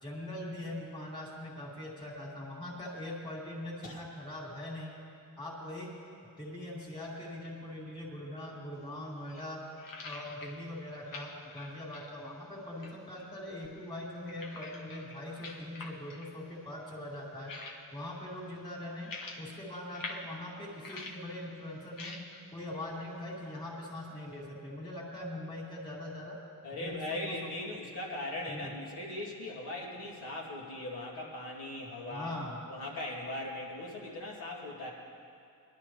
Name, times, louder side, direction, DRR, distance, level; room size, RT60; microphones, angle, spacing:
voice 1, 0.0-4.9 5.4-6.0 6.4-9.7 10.0-17.5 17.9-19.1 19.4-22.2 22.5-26.4 26.8-27.5 28.5-28.7 32.1-32.6, left 1 dB, 10° left, -5 dB, 2.3 m, -42 dB
sound 1, 8.7-24.5, left 3 dB, 60° left, 1.4 m, -49 dB
voice 2, 26.6-32.3 32.7-34.9, left 1 dB, 80° left, -4 dB, 2.4 m, -39 dB
21.0 x 11.5 x 3.3 m, 2.7 s
wide cardioid pair, 155°, 37 cm